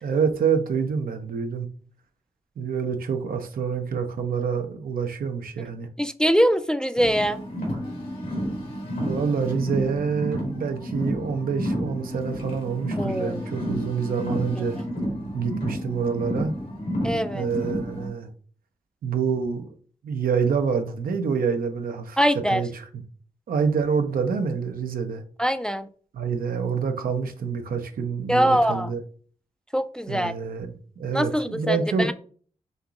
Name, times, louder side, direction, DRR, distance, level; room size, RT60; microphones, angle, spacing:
voice 1, 0.0-1.7 2.6-5.9 9.0-14.8 15.3-16.5 17.3-18.3 19.0-19.7 20.0-22.2 22.5-23.0 23.5-25.2 26.1-29.0 30.1-32.1, right 6 dB, 75° right, 0.6 m, -27 dB
voice 2, 6.0-7.4 13.0-13.4 17.0-17.5 22.2-22.6 25.4-25.9 28.3-28.9 29.7-30.3 31.1-32.1, equal, 5° left, 0.4 m, -23 dB
Car, 6.9-18.1, equal, 80° left, 1.9 m, -31 dB
5.3 x 2.9 x 2.4 m
cardioid pair, 50°, 15 cm